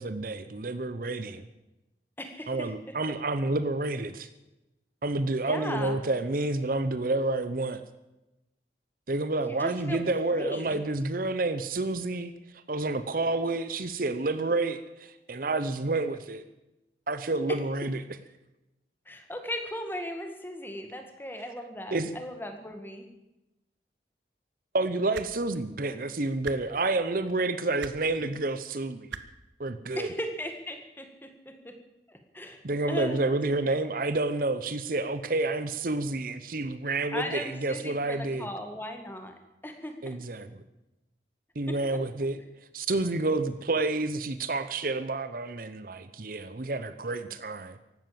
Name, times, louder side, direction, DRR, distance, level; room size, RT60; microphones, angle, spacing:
voice 1, 0.0-1.5 2.5-4.3 5.0-7.8 9.1-12.3 12.7-16.4 17.1-18.0 21.9-22.1 24.7-29.1 29.6-30.1 32.6-38.5 40.0-40.5 41.6-42.4 42.7-47.8, right 2 dB, 50° right, 12 dB, 0.8 m, -29 dB
voice 2, 2.2-2.7 5.4-6.0 9.5-10.0 10.3-10.8 17.5-17.6 19.1-23.1 30.0-31.7 32.1-32.6 32.9-33.4 33.7-33.8 37.1-39.3 39.6-40.2 41.7-42.0, equal, 10° left, 6 dB, 1.8 m, -37 dB
sound 1, 25.1-25.3 26.4-26.6 27.8-28.0 29.1-29.2 30.5-30.6, right 5 dB, 90° right, 1.0 m, -38 dB
15.5 x 12.0 x 7.5 m, 0.95 s
head